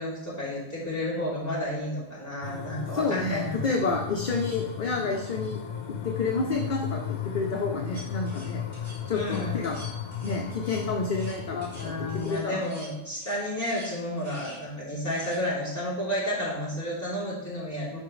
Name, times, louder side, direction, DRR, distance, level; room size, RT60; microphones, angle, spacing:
voice 1, 0.0-3.6 9.1-9.6 11.8-18.0, left 1 dB, 15° left, -9 dB, 3.1 m, -31 dB
sound 1, 2.4-12.3, left 9 dB, 80° left, 1.0 m, -35 dB
voice 2, 2.9-5.6 5.9-8.6 9.1-9.8 10.2-11.9 12.2-12.6, left 3 dB, 50° left, 1 dB, 0.7 m, -29 dB
sound 2, 7.9-14.7 15.1-15.4, equal, 90° right, 3.8 m, -47 dB
12.0 x 4.9 x 3.1 m, 0.94 s
omnidirectional pair, 1.2 m